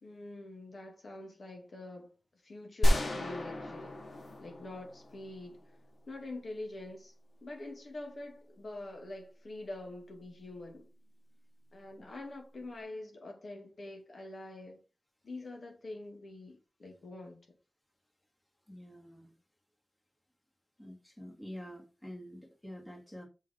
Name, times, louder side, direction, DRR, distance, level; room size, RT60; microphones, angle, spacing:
voice 1, 0.0-2.1 2.4-4.0 4.4-5.6 6.1-7.1 7.4-10.9 11.7-14.8 15.2-17.5, left 2 dB, 60° left, 2.4 m, -45 dB
sound 1, 2.8-5.7, equal, 85° left, 2.7 m, -31 dB
voice 2, 18.7-19.3 20.8-23.3, equal, 15° left, 2.3 m, -47 dB
6.2 x 5.4 x 4.7 m
wide cardioid pair, 95°, 0 cm